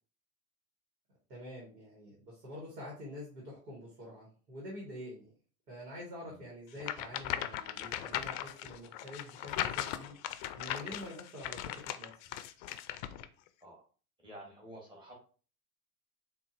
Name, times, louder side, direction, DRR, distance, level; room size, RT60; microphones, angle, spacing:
voice 1, 1.3-5.3 5.7-10.1 10.5-12.1, left 1 dB, 85° right, -3 dB, 1.4 m, -46 dB
sound 1, 6.8-13.3, left 12 dB, 50° left, 0.5 m, -38 dB
voice 2, 14.2-15.1, equal, 10° right, -3 dB, 1.2 m, -50 dB
3.9 x 2.5 x 2.5 m, 0.40 s
hypercardioid pair, 85°, 47 cm